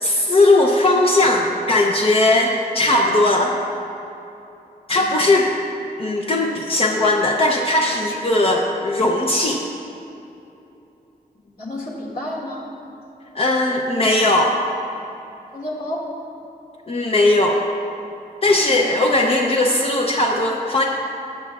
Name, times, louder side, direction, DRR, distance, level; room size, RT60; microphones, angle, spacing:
voice 1, 0.0-3.5 4.9-5.5 6.0-9.6 13.3-14.6 16.9-17.6 18.4-20.8, left 2 dB, 35° left, -1 dB, 0.6 m, -18 dB
voice 2, 4.9-5.2 11.6-12.6 15.5-16.1 18.7-18.9, left 1 dB, 65° left, -3 dB, 2.0 m, -31 dB
19.5 x 7.3 x 2.4 m, 2.9 s
wide cardioid pair, 175°, 16 cm